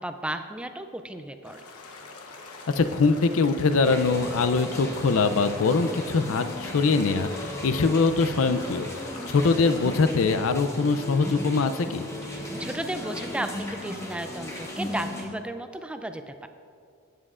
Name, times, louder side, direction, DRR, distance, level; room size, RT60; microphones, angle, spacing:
voice 1, 0.0-1.6 12.3-16.5, right 1 dB, 5° right, 8 dB, 0.3 m, -34 dB
sound 1, 1.4-10.0, left 3 dB, 90° left, 1.0 m, -44 dB
voice 2, 2.7-8.9 9.3-12.1, left 4 dB, 65° left, 10 dB, 0.5 m, -23 dB
sound 2, 3.8-15.3, left 1 dB, 15° left, 0.9 m, -36 dB
16.0 x 7.6 x 2.5 m, 2.3 s
head